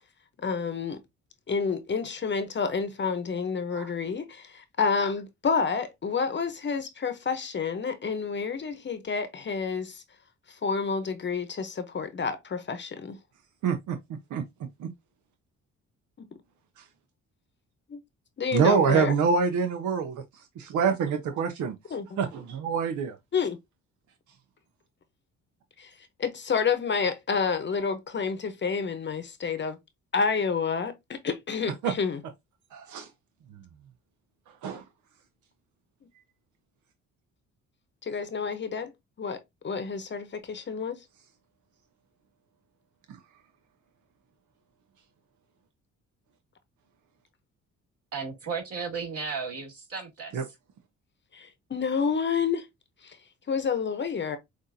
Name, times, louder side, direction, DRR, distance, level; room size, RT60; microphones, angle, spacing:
voice 1, 0.4-1.0 1.5-10.0 10.6-13.2 17.9-18.0 18.4-19.1 21.9-22.2 23.3-23.6 25.8-25.9 26.2-29.8 30.1-32.2 38.0-38.9 39.2-41.0 51.3-52.6 53.0-53.2 53.5-54.4, left 5 dB, 35° left, 0.8 m, -29 dB
voice 2, 13.6-14.0 14.3-14.4 14.8-14.9 18.5-20.1 20.6-21.7 22.2-23.2 31.8-31.9 32.7-33.1 34.6-34.8 43.1-43.2 50.3-50.4, right 6 dB, 75° right, 0.7 m, -25 dB
voice 3, 48.1-50.4, right 5 dB, 50° right, 2.6 m, -34 dB
6.3 x 2.6 x 2.7 m
cardioid pair, 90°, 30 cm